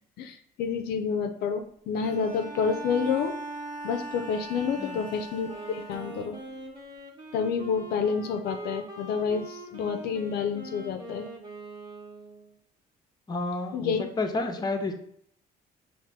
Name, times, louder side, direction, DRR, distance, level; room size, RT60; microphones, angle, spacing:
voice 1, 0.2-3.3 3.8-6.4 7.3-11.3 13.7-14.1, left 6 dB, 70° left, 6 dB, 0.5 m, -29 dB
Bowed string instrument, 1.9-6.5, right 2 dB, 50° right, 1.1 m, -40 dB
Wind instrument woodwind instrument, 5.4-12.5, right 1 dB, 25° right, 1.0 m, -43 dB
voice 2, 13.3-14.9, left 3 dB, 25° left, 5 dB, 0.6 m, -30 dB
5.8 x 2.6 x 3.4 m, 0.66 s
cardioid pair, 110°, 17 cm